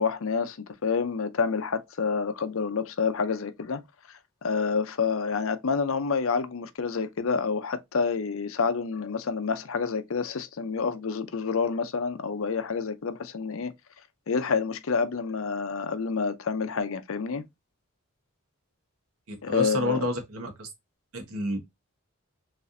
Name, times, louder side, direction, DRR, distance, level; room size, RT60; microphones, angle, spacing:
voice 1, 0.0-3.8 4.4-13.7 14.3-17.4 19.4-20.1, left 5 dB, 65° left, 0.6 m, -28 dB
voice 2, 19.3-20.7 21.1-21.6, left 1 dB, 80° right, 1.3 m, -29 dB
4.1 x 3.3 x 2.6 m
head